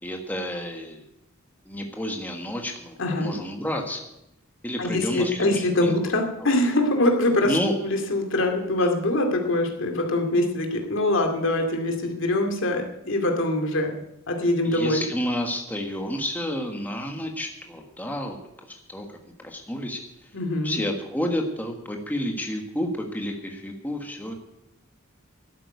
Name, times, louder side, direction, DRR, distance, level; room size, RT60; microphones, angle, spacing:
voice 1, 0.0-1.0 1.6-4.1 4.6-6.0 6.4-6.5 7.4-7.8 8.4-8.6 14.6-18.4 18.7-20.3 20.6-24.3, equal, 10° left, 3 dB, 1.4 m, -30 dB
voice 2, 3.0-3.4 4.8-13.9 14.3-15.1 20.3-20.8, left 1 dB, 65° left, 3 dB, 2.3 m, -24 dB
12.0 x 8.9 x 9.4 m, 0.85 s
head